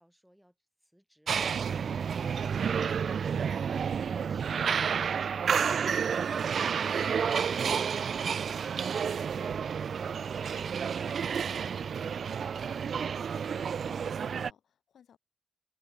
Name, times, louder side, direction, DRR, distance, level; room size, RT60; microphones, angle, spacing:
voice 1, 0.0-4.5, equal, ahead, 7.5 m, -64 dB
sound 1, 1.3-14.5, right 7 dB, 60° right, 0.5 m, -30 dB
voice 2, 13.8-15.2, left 8 dB, 85° left, 7.0 m, -60 dB
wide cardioid pair, 155°, 0 cm